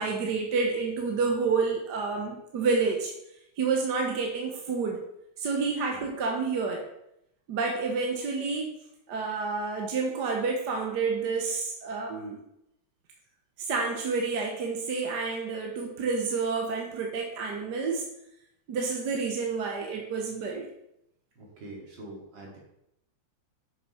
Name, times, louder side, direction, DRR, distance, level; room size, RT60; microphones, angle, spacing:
voice 1, 0.0-3.1 3.6-5.0 5.4-6.8 7.5-8.7 9.1-12.4 13.6-18.1 18.7-20.7, right 4 dB, 60° right, 1 dB, 1.5 m, -29 dB
voice 2, 21.4-22.6, right 2 dB, 75° right, -2 dB, 3.1 m, -44 dB
6.6 x 6.0 x 5.5 m, 0.82 s
omnidirectional pair, 2.1 m